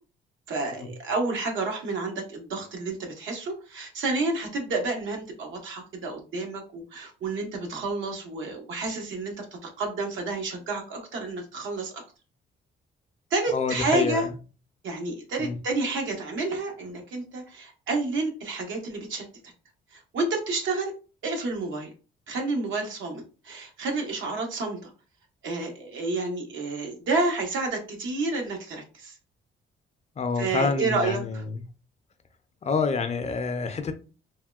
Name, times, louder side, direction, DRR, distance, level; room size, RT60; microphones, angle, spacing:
voice 1, 0.5-12.0 13.3-14.3 14.8-19.2 19.9-20.9 21.2-21.9 22.3-24.9 25.4-29.2 30.4-31.4, right 3 dB, 75° right, 0.9 m, -30 dB
voice 2, 13.5-14.3 15.4-15.6 30.2-31.6 32.6-33.9, left 5 dB, 35° left, 0.4 m, -27 dB
3.5 x 2.2 x 2.3 m
cardioid pair, 90°, 20 cm